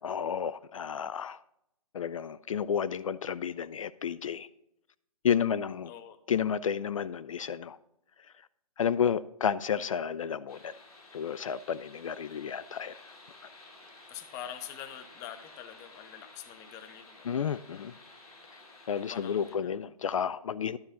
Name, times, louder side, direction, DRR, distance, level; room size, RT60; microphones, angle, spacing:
voice 1, 0.0-1.4 1.9-4.5 5.2-5.9 6.3-7.8 8.4-8.5 8.8-10.8 11.1-13.1 17.2-17.9 18.9-20.8, left 7 dB, 65° left, 17 dB, 0.4 m, -31 dB
voice 2, 5.9-6.2 14.1-17.3 19.1-19.7, left 10 dB, 15° left, 11 dB, 0.6 m, -45 dB
sound 1, 10.5-19.5, left 2 dB, 80° left, 3.3 m, -53 dB
11.5 x 5.0 x 5.6 m, 0.80 s
hypercardioid pair, 140°, 19 cm